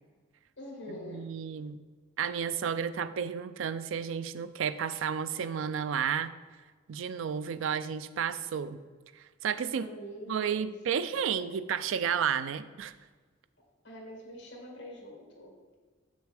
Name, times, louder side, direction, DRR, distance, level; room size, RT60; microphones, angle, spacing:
voice 1, 0.6-1.2 9.7-10.7 11.0-11.5 13.8-15.7, equal, 65° left, -1 dB, 2.0 m, -45 dB
voice 2, 1.1-1.8 2.2-6.3 6.9-8.8 9.2-9.9 10.3-12.9, right 7 dB, 80° right, 14 dB, 0.4 m, -32 dB
7.2 x 6.3 x 3.4 m, 1.4 s
head